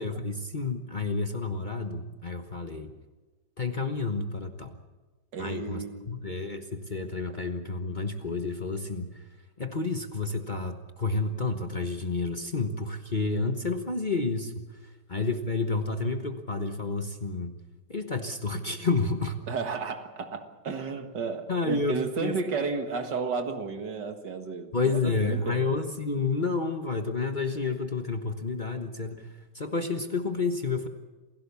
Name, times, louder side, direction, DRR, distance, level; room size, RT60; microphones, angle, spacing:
voice 1, 0.0-2.9 3.6-4.8 5.4-9.3 9.6-17.5 17.9-19.4 21.5-22.4 24.7-30.9, left 3 dB, 30° left, 6 dB, 1.2 m, -30 dB
voice 2, 5.3-6.1 19.5-24.7 25.0-25.6, right 4 dB, 70° right, 7 dB, 2.3 m, -32 dB
28.0 x 16.5 x 7.0 m, 1.3 s
omnidirectional pair, 2.0 m